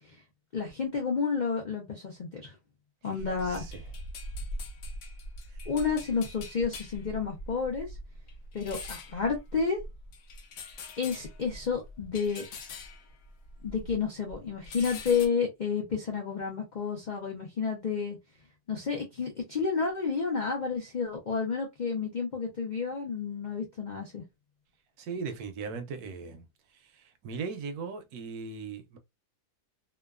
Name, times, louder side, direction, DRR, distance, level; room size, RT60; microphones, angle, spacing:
voice 1, 0.5-2.6 3.0-3.6 5.7-7.9 8.5-9.8 11.0-12.4 13.6-18.2 18.7-24.2, left 5 dB, 85° left, 0.4 m, -30 dB
sound 1, 3.2-14.0 14.3-15.3, left 1 dB, 65° left, 0.8 m, -42 dB
voice 2, 3.5-3.8 25.0-26.5 27.0-29.0, right 5 dB, 75° right, 1.1 m, -38 dB
2.9 x 2.2 x 2.3 m
omnidirectional pair, 1.7 m